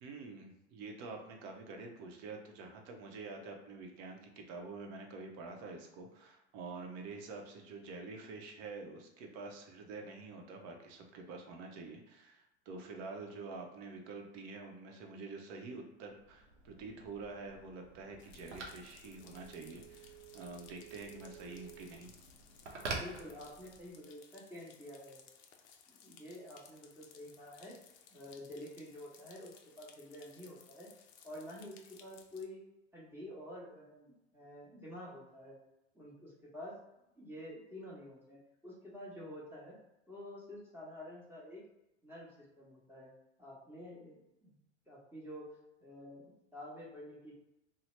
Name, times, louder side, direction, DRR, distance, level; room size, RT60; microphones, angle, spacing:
voice 1, 0.0-22.1, right 3 dB, 50° right, 3 dB, 0.7 m, -47 dB
Telephone, 16.2-24.0, right 3 dB, 90° right, 0.7 m, -48 dB
sound 1, 18.2-32.4, left 7 dB, 35° left, 0.5 m, -61 dB
voice 2, 22.9-25.2 25.9-27.8 28.1-30.9 31.2-32.6 32.9-35.6 35.9-36.8 37.1-39.8 40.1-41.6 42.0-43.1 43.4-44.6 44.9-45.5 45.8-47.3, left 1 dB, 5° right, -5 dB, 1.1 m, -49 dB
2.7 x 2.1 x 3.2 m, 0.90 s
hypercardioid pair, 95°, 35 cm